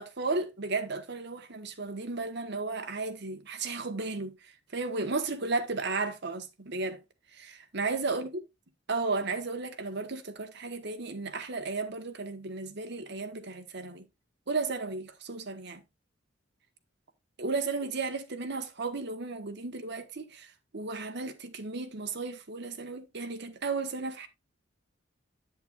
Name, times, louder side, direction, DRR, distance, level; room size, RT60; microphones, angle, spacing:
voice 1, 0.0-4.4 4.7-7.0 7.3-8.3 8.9-14.0 14.5-15.8 17.4-20.5 20.7-24.3, right 3 dB, 60° right, 1.2 m, -34 dB
8.4 x 7.8 x 2.4 m
head